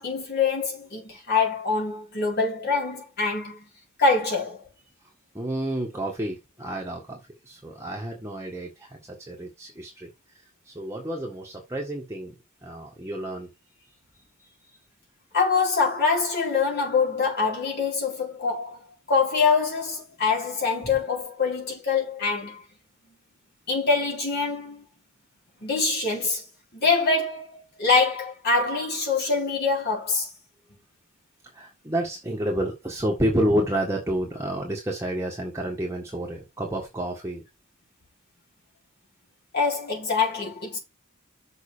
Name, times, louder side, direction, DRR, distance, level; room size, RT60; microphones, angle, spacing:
voice 1, 0.0-3.6 4.0-4.6 15.3-22.6 23.7-24.8 25.6-26.4 26.7-30.3 39.5-40.8, left 4 dB, 50° left, 4.2 m, -24 dB
voice 2, 5.3-7.2 7.4-10.1 10.7-12.3 12.6-13.5 14.4-14.5 20.8-20.9 31.5-37.4, right 1 dB, 15° right, 1.6 m, -29 dB
6.7 x 6.2 x 5.0 m
head